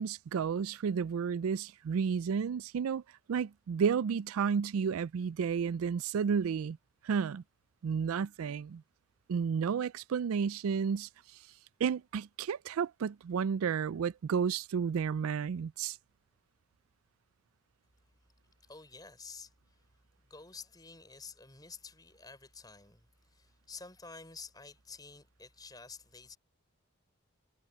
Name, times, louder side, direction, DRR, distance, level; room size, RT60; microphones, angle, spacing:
voice 1, 0.0-3.0 3.3-6.8 7.0-7.4 7.8-8.8 9.3-11.1 11.8-16.0, right 6 dB, 85° right, 0.4 m, -32 dB
voice 2, 18.7-19.5 20.2-26.4, left 4 dB, 20° left, 5.0 m, -50 dB
head